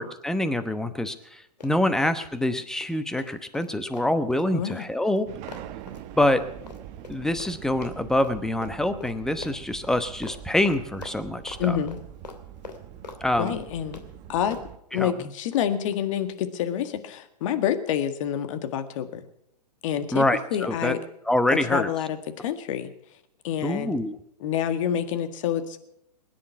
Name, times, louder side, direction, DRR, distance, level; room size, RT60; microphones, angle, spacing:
voice 1, 0.0-5.3 6.2-6.4 7.1-11.8 13.2-13.5 14.9-15.1 20.1-20.9 21.3-21.9 23.6-24.2, left 1 dB, ahead, 10 dB, 1.0 m, -25 dB
Run, 1.6-2.5 2.8-7.6 7.8-8.3 8.6-8.7 9.0-9.1 9.4-10.0 10.2-10.4 10.6-11.6 11.9-13.2 13.5-14.1 14.5-14.7, left 4 dB, 85° left, 2.8 m, -43 dB
voice 2, 4.5-4.8 11.6-12.0 13.4-14.0 14.3-14.6 14.9-19.2 19.8-20.2 20.5-21.0 21.7-22.9 23.4-24.0 24.4-25.8, left 9 dB, 50° left, 9 dB, 1.8 m, -27 dB
sound 1, 5.3-14.8, right 11 dB, 35° right, 1.1 m, -43 dB
21.0 x 10.5 x 5.9 m, 0.77 s
hypercardioid pair, 125°, 21 cm